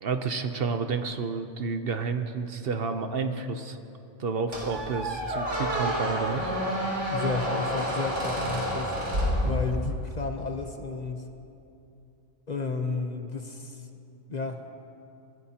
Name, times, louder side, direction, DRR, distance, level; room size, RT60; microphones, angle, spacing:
voice 1, 0.0-3.8 4.2-6.5 9.4-9.6, right 4 dB, 55° right, 7 dB, 0.9 m, -30 dB
Squeak, 4.5-10.0, equal, 80° right, 3.5 m, -29 dB
voice 2, 7.1-9.0 9.4-11.3 12.5-13.9 14.3-14.6, left 4 dB, 40° left, 5 dB, 0.8 m, -32 dB
25.0 x 15.5 x 2.9 m, 2.7 s
omnidirectional pair, 1.2 m